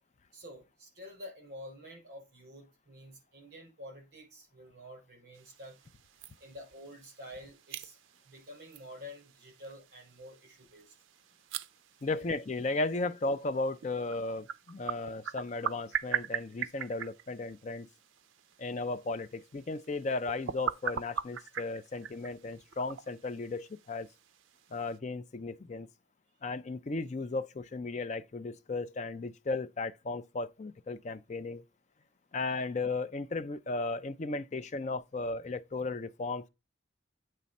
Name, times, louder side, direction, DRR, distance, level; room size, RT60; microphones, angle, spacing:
voice 1, 0.3-5.8 6.4-8.0 8.2-10.9 12.1-12.3, left 1 dB, 50° right, 4.4 m, -49 dB
sound 1, 5.3-25.0, right 8 dB, 75° right, 0.4 m, -42 dB
voice 2, 12.0-17.9 18.6-24.1 24.7-25.9 26.4-31.6 32.3-36.5, left 3 dB, 35° left, 0.4 m, -35 dB
8.3 x 3.3 x 5.3 m
head